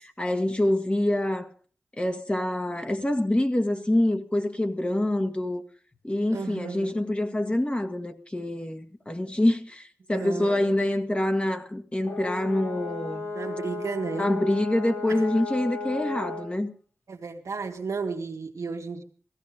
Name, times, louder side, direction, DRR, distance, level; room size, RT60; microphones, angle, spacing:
voice 1, 0.0-1.5 2.0-5.6 6.0-13.3 14.2-16.7, left 1 dB, 20° left, 1.7 m, -26 dB
voice 2, 6.3-7.0 10.1-10.7 13.3-14.3 15.1-15.2 17.1-19.0, right 4 dB, 85° right, 1.7 m, -33 dB
Brass instrument, 12.0-16.5, left 3 dB, 60° left, 5.9 m, -35 dB
17.0 x 15.0 x 5.1 m
wide cardioid pair, 60°, 5 cm